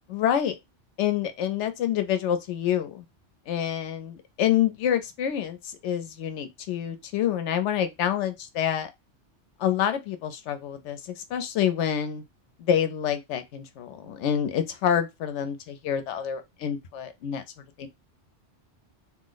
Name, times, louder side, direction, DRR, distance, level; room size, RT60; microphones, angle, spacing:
voice 1, 0.1-0.5 1.0-3.0 3.5-8.9 9.6-12.2 12.6-17.4 17.8-17.9, left 9 dB, 85° left, 0.9 m, -27 dB
2.8 x 2.0 x 3.8 m
omnidirectional pair, 1.2 m